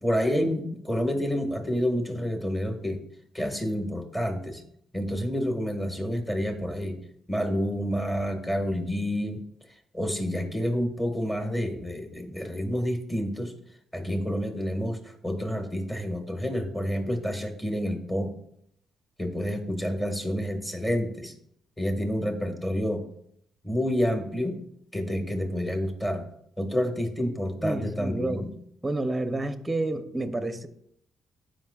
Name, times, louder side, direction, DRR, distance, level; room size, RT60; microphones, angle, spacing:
voice 1, 0.0-3.0 3.3-4.6 4.9-7.0 7.3-9.4 9.9-13.5 13.9-18.3 19.2-21.3 21.8-23.0 23.6-24.6 24.9-26.2 26.6-28.5, equal, 15° left, 1.6 m, -29 dB
voice 2, 27.6-28.4 28.8-30.7, right 2 dB, 15° right, 0.7 m, -29 dB
14.5 x 5.2 x 2.3 m
cardioid pair, 90°, 0 cm